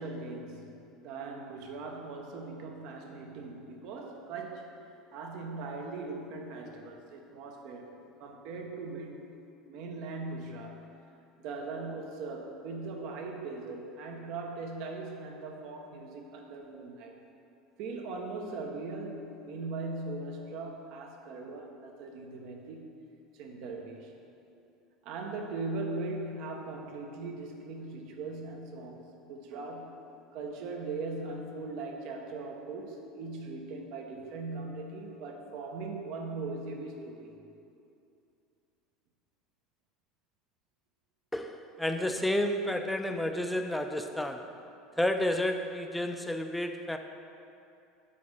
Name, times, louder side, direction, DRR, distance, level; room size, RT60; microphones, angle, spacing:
voice 1, 0.0-4.8 5.1-9.3 9.7-10.9 11.4-17.2 17.8-22.9 23.3-24.1 25.0-30.1 30.3-37.3, right 3 dB, 65° right, 2 dB, 0.8 m, -40 dB
voice 2, 41.3-44.5 45.0-47.0, left 1 dB, 5° left, 6 dB, 0.4 m, -31 dB
5.2 x 3.9 x 5.4 m, 2.6 s
hypercardioid pair, 85°, 0 cm